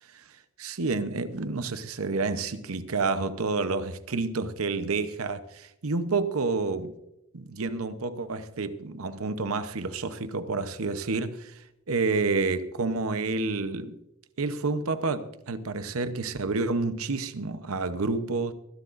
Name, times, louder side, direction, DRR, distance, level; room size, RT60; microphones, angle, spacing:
voice 1, 0.6-6.9 7.3-14.0 14.4-18.5, right 3 dB, 75° right, 0.8 m, -29 dB
24.0 x 12.0 x 2.6 m
head